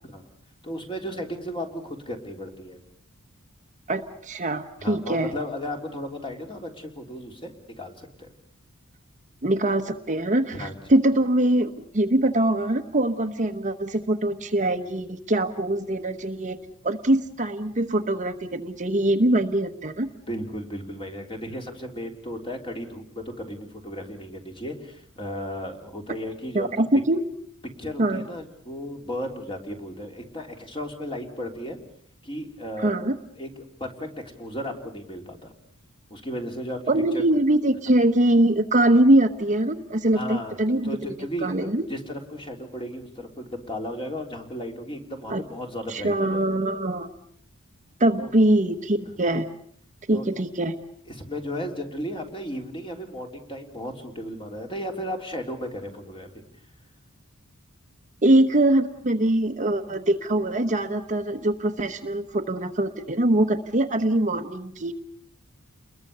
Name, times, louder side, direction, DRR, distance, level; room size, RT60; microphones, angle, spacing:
voice 1, 0.6-2.8 4.8-8.3 10.5-10.7 20.3-26.7 27.8-31.8 32.2-32.9 33.4-33.5 33.8-35.5 36.1-36.8 37.1-37.2 40.1-46.4 48.2-48.3 49.1-49.2 50.1-50.3 51.1-56.3, equal, 25° left, 3 dB, 3.6 m, -35 dB
voice 2, 3.9-5.3 9.4-16.6 16.8-20.1 26.5-27.2 28.0-28.2 32.8-33.1 36.9-41.8 45.3-45.4 45.9-47.1 48.0-49.5 50.1-50.8 58.2-64.9, right 1 dB, 35° right, 7 dB, 1.1 m, -23 dB
29.5 x 21.5 x 6.8 m, 0.63 s
head